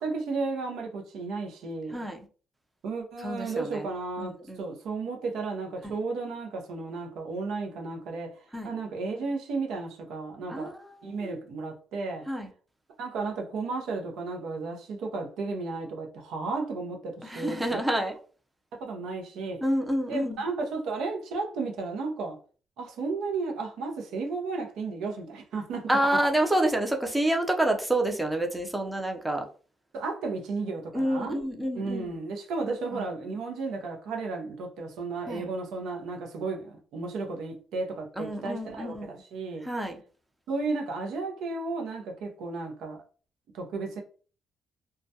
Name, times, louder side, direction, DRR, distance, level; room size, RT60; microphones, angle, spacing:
voice 1, 0.0-2.0 2.8-8.3 8.6-10.7 11.0-12.2 13.0-17.8 18.8-19.6 20.1-22.4 22.8-26.2 29.9-31.5 31.7-39.7 40.5-43.0 43.5-44.0, right 3 dB, 85° right, 0.6 m, -33 dB
voice 2, 1.9-2.3 3.2-3.9 4.2-4.7 5.8-5.9 8.5-8.7 10.5-11.4 12.3-12.5 17.2-18.1 19.6-20.4 25.9-29.4 30.9-32.2 32.9-33.1 35.3-35.4 38.2-39.2 39.6-40.0, right 1 dB, 10° right, 0.5 m, -28 dB
2.2 x 2.1 x 2.7 m
cardioid pair, 90°, 0 cm